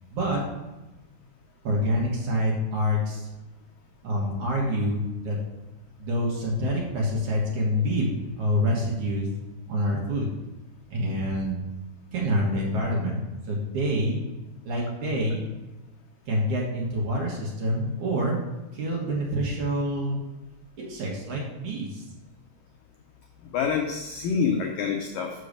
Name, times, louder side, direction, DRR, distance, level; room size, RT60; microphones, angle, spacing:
voice 1, 0.1-0.4 1.6-3.3 4.0-5.4 6.0-9.3 9.7-10.3 10.9-11.6 12.1-13.2 13.5-14.2 14.6-15.4 16.3-18.4 18.7-20.2 20.8-22.0, equal, 60° right, -2 dB, 2.3 m, -26 dB
voice 2, 23.5-25.5, left 6 dB, 90° left, 2 dB, 1.9 m, -27 dB
6.6 x 6.4 x 6.6 m, 1.1 s
omnidirectional pair, 4.9 m